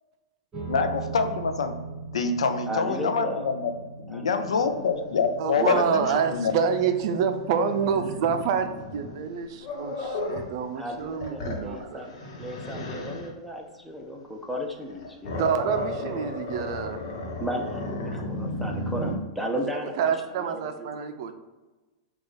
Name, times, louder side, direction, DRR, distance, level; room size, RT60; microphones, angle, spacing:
sound 1, 0.5-13.0, right 4 dB, 15° right, 1.4 m, -42 dB
voice 1, 0.7-1.8 2.1-3.7 4.0-6.5, left 5 dB, 90° left, 8 dB, 0.5 m, -26 dB
voice 2, 2.7-3.5 4.1-4.9 5.6-6.0 10.8-15.5 17.4-20.9, equal, ahead, 1 dB, 0.7 m, -34 dB
Growling, 4.4-10.5 11.0-13.3 14.7-19.2, left 1 dB, 60° left, 1.0 m, -35 dB
voice 3, 5.4-12.1 15.4-17.0 20.0-21.3, right 7 dB, 55° right, 8 dB, 0.5 m, -27 dB
5.0 x 2.4 x 3.9 m, 1.2 s
hypercardioid pair, 125°, 3 cm